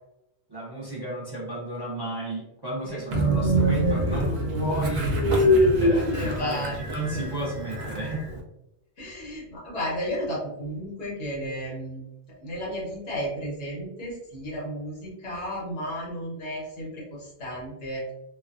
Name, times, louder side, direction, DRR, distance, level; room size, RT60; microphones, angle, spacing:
voice 1, 0.5-5.1 5.3-8.3, right 1 dB, 30° right, -6 dB, 0.5 m, -33 dB
Train, 3.1-8.4, equal, 80° right, 0.9 m, -24 dB
voice 2, 6.1-6.7 7.1-7.2 9.0-12.0 12.4-18.0, equal, 90° left, -5 dB, 1.4 m, -33 dB
3.1 x 2.0 x 2.4 m, 0.87 s
omnidirectional pair, 1.1 m